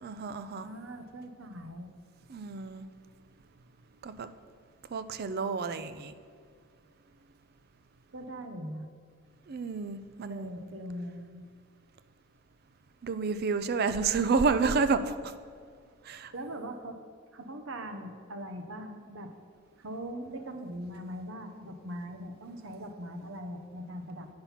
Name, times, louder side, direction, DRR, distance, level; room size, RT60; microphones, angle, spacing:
voice 1, 0.0-0.7 2.3-2.9 4.0-4.3 4.9-6.1 9.5-10.5 13.0-15.3 16.0-16.3, right 4 dB, 50° right, 12 dB, 0.4 m, -30 dB
voice 2, 0.6-1.9 8.1-8.9 10.3-11.4 16.3-17.0 17.3-19.3 19.8-24.3, equal, 65° right, 6 dB, 0.8 m, -41 dB
8.7 x 5.6 x 5.8 m, 2.1 s
head